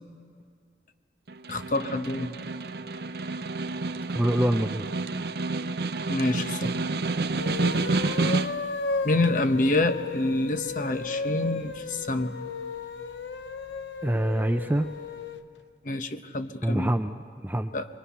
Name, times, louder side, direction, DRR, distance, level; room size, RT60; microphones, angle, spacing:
Snare drum, 1.3-8.8, right 3 dB, 60° right, 0.6 m, -29 dB
voice 1, 1.5-2.3 6.1-6.8 9.0-12.3 15.8-16.9 17.7-17.9, left 2 dB, 45° left, 8 dB, 0.9 m, -27 dB
voice 2, 4.1-4.9 14.0-14.9 16.6-17.7, right 1 dB, 10° right, 8 dB, 0.4 m, -25 dB
sound 1, 7.3-15.4, left 4 dB, 85° left, 0.8 m, -34 dB
24.5 x 22.5 x 5.7 m, 2.3 s
head